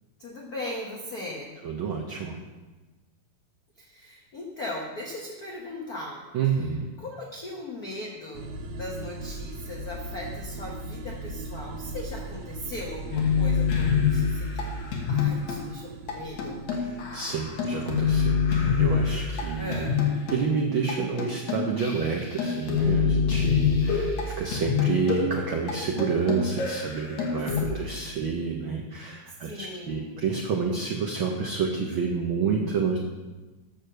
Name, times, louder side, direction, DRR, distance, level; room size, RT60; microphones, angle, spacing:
voice 1, 0.2-1.6 3.8-14.7 15.1-16.6 19.6-20.0 27.6-27.9 29.3-30.2, left 1 dB, 90° left, -1 dB, 0.8 m, -39 dB
voice 2, 1.6-2.4 6.3-6.9 16.8-19.9 20.3-33.0, right 5 dB, 75° right, 1 dB, 1.1 m, -29 dB
sound 1, 8.3-20.7, right 1 dB, 90° right, 2.2 m, -40 dB
sound 2, 13.1-15.6 16.1-16.2 16.4-20.4 20.9-21.0 21.2-27.6, left 6 dB, 75° left, 2.7 m, -26 dB
7.9 x 6.7 x 6.6 m, 1.2 s
omnidirectional pair, 3.3 m